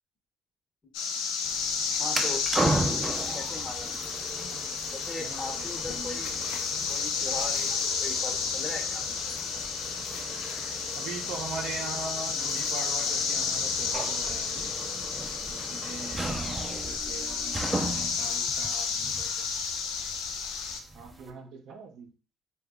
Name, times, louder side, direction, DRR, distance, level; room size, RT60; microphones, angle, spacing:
sound 1, 0.9-20.8, left 5 dB, 85° left, 0.4 m, -31 dB
sound 2, 1.4-21.3, right 2 dB, 20° right, 0.5 m, -37 dB
voice 1, 2.0-3.0 3.3-3.9 4.9-6.3 6.9-9.1 21.1-21.6, left 2 dB, 30° left, 0.9 m, -39 dB
voice 2, 5.2-6.2 11.0-14.7 15.5-19.7 20.9-22.1, right 5 dB, 70° right, 0.6 m, -42 dB
sound 3, 13.9-14.9 16.2-17.0, right 4 dB, 45° right, 0.9 m, -44 dB
2.8 x 2.3 x 3.5 m
supercardioid pair, 85°, 0 cm